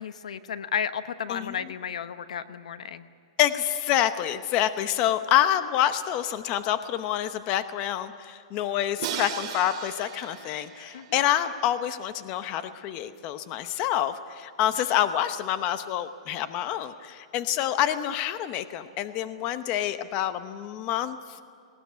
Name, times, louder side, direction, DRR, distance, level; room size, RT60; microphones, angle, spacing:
voice 1, 0.0-3.1 10.9-11.2, left 8 dB, 85° left, 12 dB, 1.0 m, -33 dB
voice 2, 3.4-21.4, left 11 dB, 30° left, 11 dB, 0.8 m, -27 dB
Crash cymbal, 9.0-11.9, right 9 dB, 40° right, 2.4 m, -37 dB
19.5 x 18.5 x 9.5 m, 2.4 s
hypercardioid pair, 160°, 3 cm